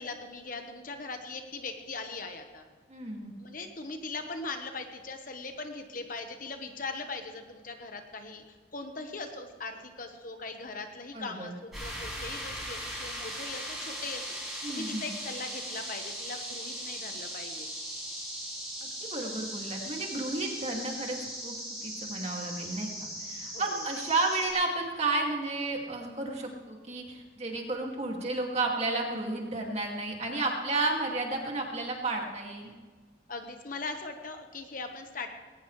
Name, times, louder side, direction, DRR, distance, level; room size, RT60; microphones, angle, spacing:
voice 1, 0.0-2.6 3.4-17.7 23.5-23.8 33.3-35.3, left 3 dB, 45° left, 5 dB, 1.2 m, -40 dB
voice 2, 2.9-3.3 11.1-11.6 14.6-15.1 19.1-21.5 21.8-32.7, right 2 dB, 35° right, 0 dB, 2.3 m, -32 dB
sound 1, 11.7-24.5, equal, ahead, 5.7 m, -39 dB
20.0 x 18.5 x 3.3 m, 1.5 s
head